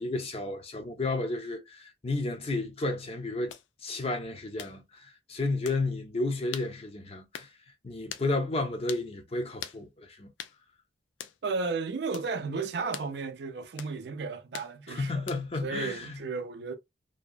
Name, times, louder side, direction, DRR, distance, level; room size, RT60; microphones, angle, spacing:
voice 1, 0.0-3.5 3.8-7.5 7.8-10.3 14.9-16.2, left 2 dB, 30° left, 0.5 m, -32 dB
sound 1, 3.5-3.7 4.6-4.8 5.6-5.8 6.5-6.7 7.3-7.5 8.1-8.3 8.9-9.1 9.6-9.8 10.4-10.6 11.2-11.4 12.1-12.3 12.9-13.1 13.8-14.0 14.5-14.7 15.3-15.6, left 9 dB, 90° left, 0.3 m, -41 dB
voice 2, 11.4-16.7, right 4 dB, 65° right, 0.4 m, -34 dB
2.7 x 2.2 x 2.4 m
head